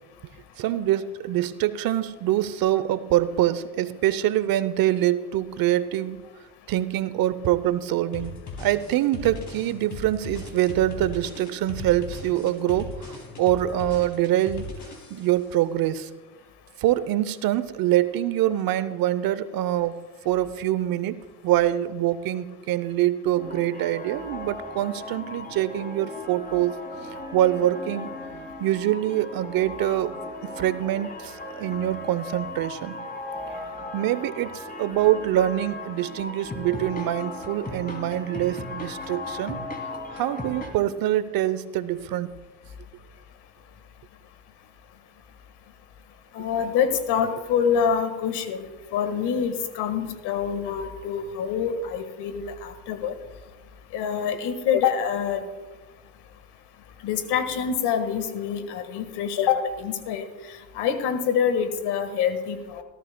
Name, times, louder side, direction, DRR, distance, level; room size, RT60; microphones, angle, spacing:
voice 1, 0.6-6.2 6.7-8.3 8.6-14.7 15.1-16.1 16.8-20.0 20.2-26.8 27.3-28.1 28.6-33.0 33.9-39.6 40.1-42.3, right 13 dB, 50° right, 15 dB, 0.7 m, -25 dB
sound 1, 8.1-15.4, left 3 dB, 40° left, 4.2 m, -38 dB
sound 2, 23.3-40.7, left 2 dB, 20° left, 2.5 m, -37 dB
voice 2, 46.3-48.7 48.9-53.1 53.9-55.4 57.0-60.3 60.7-62.8, left 7 dB, 65° left, 9 dB, 1.6 m, -26 dB
18.5 x 14.0 x 2.2 m, 1.2 s
hypercardioid pair, 80°, 44 cm